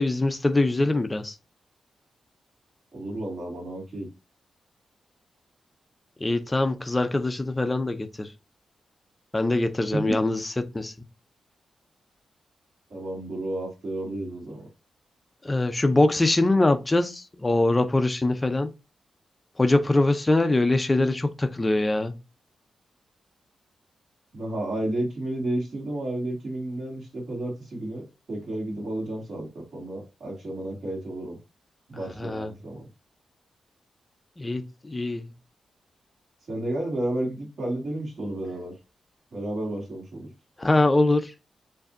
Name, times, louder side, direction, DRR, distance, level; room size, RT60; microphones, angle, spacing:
voice 1, 0.0-1.3 6.2-8.3 9.3-10.9 15.4-18.7 19.6-22.1 32.2-32.5 34.4-35.3 40.6-41.3, left 2 dB, 15° left, 0.5 m, -23 dB
voice 2, 2.9-4.1 9.9-10.2 12.9-14.7 24.3-31.4 31.9-32.8 36.5-38.7 39.3-40.3, right 1 dB, 45° right, 2.0 m, -32 dB
7.1 x 2.6 x 2.5 m
wide cardioid pair, 165°, 0 cm